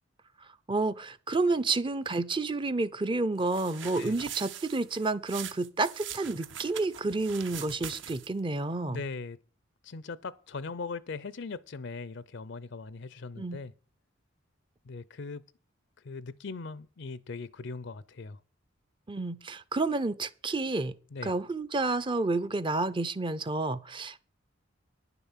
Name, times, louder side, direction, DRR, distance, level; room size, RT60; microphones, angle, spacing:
voice 1, 0.7-9.0 13.4-13.6 19.1-20.9 21.2-24.2, right 3 dB, 25° right, 0.5 m, -30 dB
sound 1, 3.4-8.4, right 9 dB, 60° right, 0.9 m, -42 dB
voice 2, 8.8-9.4 9.8-13.7 14.9-15.4 16.0-18.4 21.1-21.3, left 4 dB, 60° left, 0.5 m, -40 dB
10.5 x 6.9 x 7.3 m
head